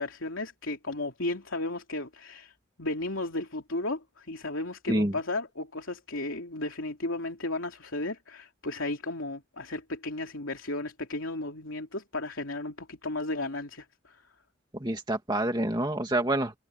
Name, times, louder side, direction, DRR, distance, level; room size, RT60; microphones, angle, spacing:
voice 1, 0.0-14.2, left 2 dB, 75° left, 3.1 m, -34 dB
voice 2, 14.8-16.5, right 1 dB, 20° right, 2.0 m, -27 dB
head